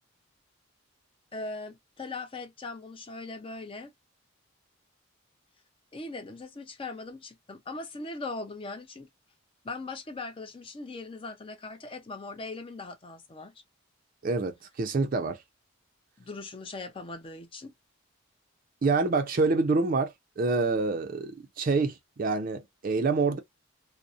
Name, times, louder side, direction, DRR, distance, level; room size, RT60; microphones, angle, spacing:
voice 1, 1.3-3.9 5.9-9.1 9.6-13.5 16.2-17.7, left 3 dB, 25° left, 0.5 m, -40 dB
voice 2, 14.2-15.4 18.8-23.4, right 3 dB, 40° right, 0.4 m, -27 dB
2.6 x 2.0 x 2.4 m
head